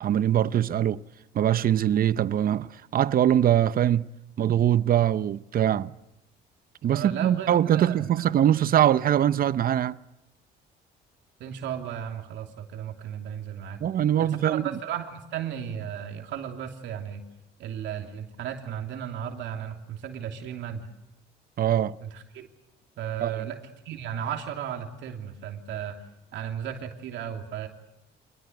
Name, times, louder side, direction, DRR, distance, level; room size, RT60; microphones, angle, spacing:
voice 1, 0.0-1.0 1.3-4.1 4.4-5.9 6.8-10.0 13.8-14.6 21.6-21.9 23.2-23.5, right 10 dB, 50° right, 0.8 m, -22 dB
voice 2, 6.9-8.1 11.4-13.8 14.2-17.3 17.6-20.9 22.0-22.5 23.0-23.6 23.8-26.0 26.3-27.7, right 9 dB, 75° right, 3.1 m, -35 dB
26.5 x 19.5 x 8.0 m
cardioid pair, 105°, 19 cm